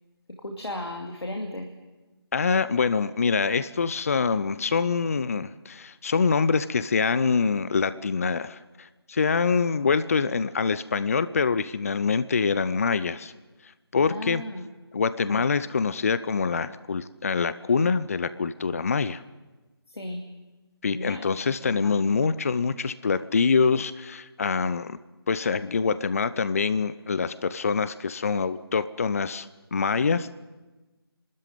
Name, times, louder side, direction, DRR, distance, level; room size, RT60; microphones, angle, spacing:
voice 1, 0.4-1.7 14.0-14.6 15.3-15.4 20.0-20.2 20.9-21.2 21.6-22.0, left 1 dB, 80° left, 2 dB, 2.6 m, -35 dB
voice 2, 2.3-13.3 13.9-14.4 14.9-19.2 20.8-25.0 25.3-30.3, left 5 dB, 35° left, 15 dB, 0.6 m, -25 dB
27.0 x 13.0 x 9.3 m, 1.2 s
figure-of-eight pair, 160°, 13 cm